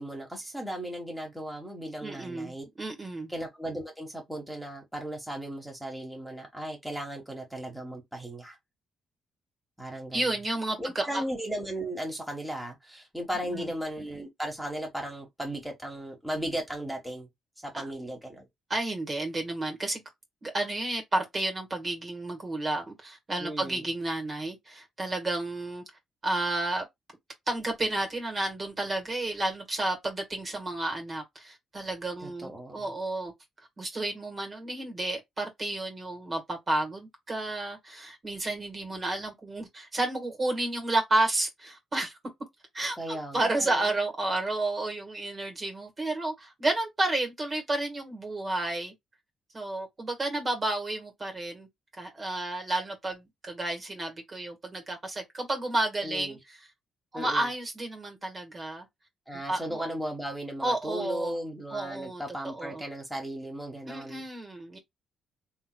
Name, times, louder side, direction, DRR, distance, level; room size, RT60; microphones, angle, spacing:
voice 1, 0.0-2.6 3.3-8.6 9.8-10.3 10.8-17.3 17.6-18.5 23.4-23.9 32.2-32.9 43.0-43.9 56.0-56.4 57.1-57.5 59.3-64.2, right 1 dB, 5° right, 1.3 m, -36 dB
voice 2, 2.0-3.3 10.1-11.2 13.5-13.7 17.7-17.8 18.7-20.0 20.4-25.8 26.2-26.9 27.5-33.3 33.8-42.2 42.7-48.9 49.5-51.7 52.0-56.4 57.1-58.9 59.5-59.8 60.6-61.3 61.7-62.8 63.8-64.8, right 2 dB, 30° right, 1.4 m, -31 dB
3.4 x 3.0 x 2.2 m
cardioid pair, 90°, 0 cm